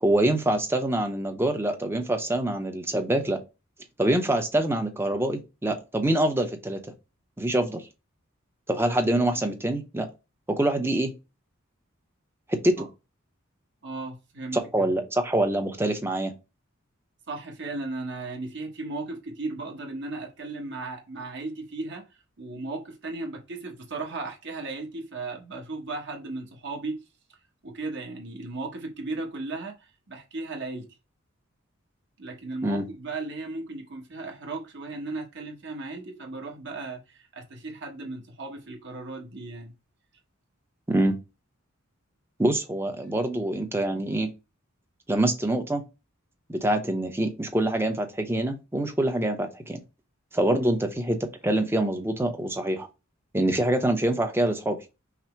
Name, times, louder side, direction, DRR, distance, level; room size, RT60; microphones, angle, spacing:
voice 1, 0.0-3.4 4.0-6.8 7.4-7.9 8.7-10.1 10.5-11.1 12.5-12.9 14.5-16.3 32.6-32.8 40.9-41.2 42.4-44.3 45.1-45.8 46.5-49.8 50.3-52.9 53.3-54.8, right 1 dB, 10° right, 0.7 m, -25 dB
voice 2, 13.8-14.9 17.3-22.0 22.4-27.0 27.6-30.9 32.2-39.7 50.4-50.7, right 3 dB, 60° right, 1.3 m, -36 dB
5.8 x 2.0 x 4.5 m
head